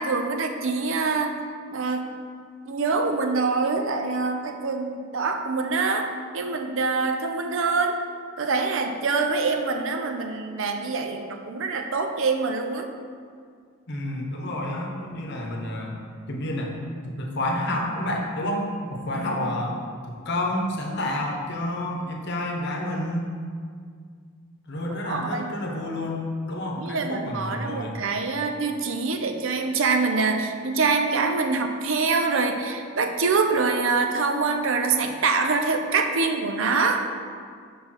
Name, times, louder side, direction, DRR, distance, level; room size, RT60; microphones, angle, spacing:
voice 1, 0.0-1.4 1.7-2.1 2.7-8.0 8.4-12.9 25.1-25.5 26.8-37.1, right 4 dB, 65° right, 5 dB, 0.6 m, -25 dB
voice 2, 13.9-16.0 16.3-16.7 17.0-19.8 20.0-23.3 24.7-28.0, left 1 dB, 55° left, 0 dB, 1.0 m, -29 dB
5.4 x 4.4 x 6.0 m, 2.1 s
head